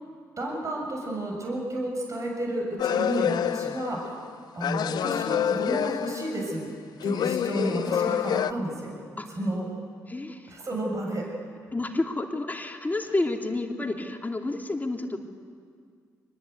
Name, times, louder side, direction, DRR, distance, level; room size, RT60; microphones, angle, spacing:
voice 1, 0.4-4.3 4.6-6.7 7.0-9.0 9.3-9.7 10.5-11.3, right 1 dB, 35° right, -1 dB, 6.9 m, -31 dB
sound 1, 2.8-4.3 4.6-6.6 7.0-8.5, left 9 dB, 50° left, 0.6 m, -27 dB
voice 2, 10.1-10.5 11.7-15.2, left 2 dB, 20° left, 3 dB, 2.8 m, -30 dB
26.0 x 21.0 x 8.2 m, 2.1 s
figure-of-eight pair, 40°, 9 cm